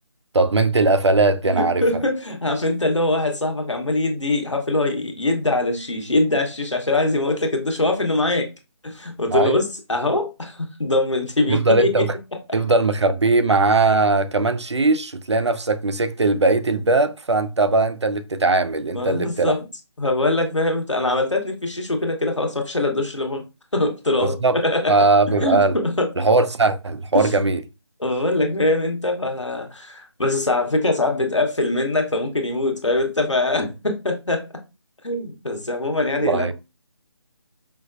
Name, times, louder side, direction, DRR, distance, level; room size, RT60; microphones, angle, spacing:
voice 1, 0.3-1.8 9.3-9.5 11.5-12.1 12.5-19.5 24.2-24.5 24.9-25.8 26.2-27.6 36.2-36.5, right 3 dB, 70° right, 0.5 m, -19 dB
voice 2, 1.4-8.5 8.8-12.1 12.5-12.6 18.9-19.6 20.0-23.5 23.7-24.9 25.3-26.1 27.1-27.4 28.0-34.4 35.0-36.5, left 2 dB, 85° left, 1.0 m, -23 dB
4.9 x 2.1 x 2.5 m
figure-of-eight pair, 155°, 15 cm